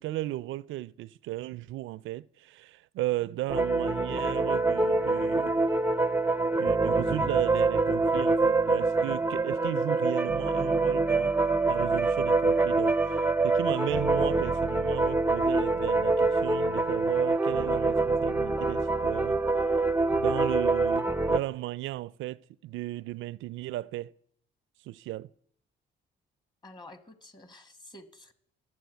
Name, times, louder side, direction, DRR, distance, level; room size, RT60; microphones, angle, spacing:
voice 1, 0.0-5.5 6.6-11.3 11.7-19.4 20.1-24.1 24.8-25.3, right 16 dB, 80° right, 0.4 m, -35 dB
sound 1, 3.5-21.4, right 3 dB, 10° right, 0.5 m, -25 dB
voice 2, 26.6-28.3, left 1 dB, 20° left, 1.3 m, -50 dB
12.5 x 7.6 x 7.9 m
cardioid pair, 90°, 20 cm